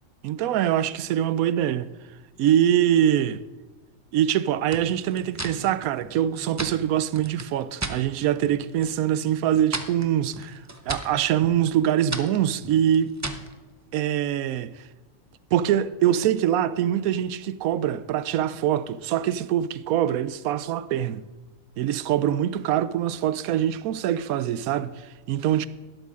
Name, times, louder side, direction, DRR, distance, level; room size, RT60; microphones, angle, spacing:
voice 1, 0.2-1.9 2.4-3.4 4.1-13.2 13.9-14.7 15.5-21.2 21.8-24.9 25.3-25.7, right 11 dB, 80° right, 1.0 m, -24 dB
sound 1, 4.7-8.0 8.4-9.0 9.3-13.5, right 2 dB, 20° right, 0.4 m, -36 dB
12.0 x 12.0 x 3.6 m
omnidirectional pair, 1.5 m